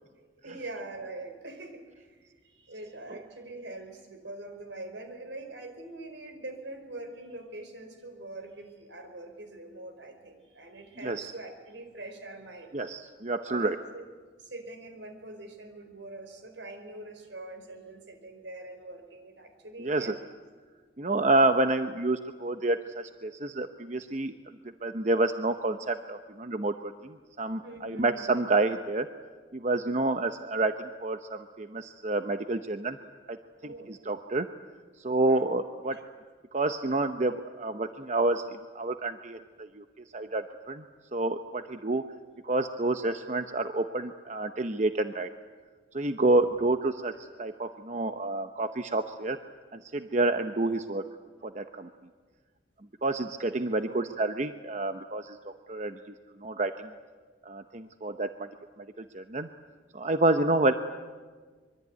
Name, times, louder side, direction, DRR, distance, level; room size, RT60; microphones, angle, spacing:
voice 1, 0.4-1.8 2.1-12.8 13.5-14.0 14.4-20.2 27.6-28.3 33.6-33.9 35.2-35.5 35.9-36.0 53.7-54.2, right 2 dB, 80° right, 7 dB, 4.6 m, -43 dB
voice 2, 12.7-13.8 19.8-20.2 21.0-24.3 24.8-29.1 29.5-33.0 33.3-33.4 33.6-34.5 35.0-36.0 36.5-39.8 40.1-40.8 41.1-42.0 42.4-45.3 45.9-49.4 49.7-51.0 51.4-51.9 53.0-56.0 56.4-56.9 57.5-58.5 59.0-59.5 59.9-60.7, right 2 dB, 40° right, 8 dB, 0.8 m, -29 dB
24.5 x 23.5 x 9.5 m, 1.5 s
head